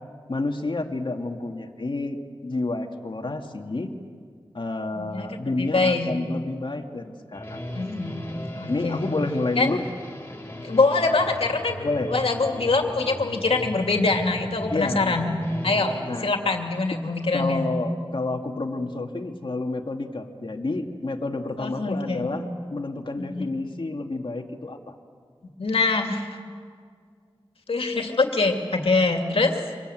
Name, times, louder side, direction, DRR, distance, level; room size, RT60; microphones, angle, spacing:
voice 1, 0.3-2.2 2.4-3.9 4.5-7.6 8.7-9.9 11.8-12.1 14.7-15.3 16.0-16.3 17.3-25.0, left 2 dB, 60° left, 3 dB, 2.1 m, -29 dB
voice 2, 4.9-6.1 7.7-8.2 8.6-9.1 9.6-9.7 10.6-15.4 15.6-15.9 16.2-17.6 21.6-22.3 23.2-23.4 25.6-26.3 27.7-29.6, left 3 dB, 85° left, 3 dB, 2.5 m, -24 dB
sound 1, 7.3-16.0, equal, 25° left, 6.2 m, -38 dB
26.0 x 21.5 x 9.2 m, 2.1 s
wide cardioid pair, 70°, 9 cm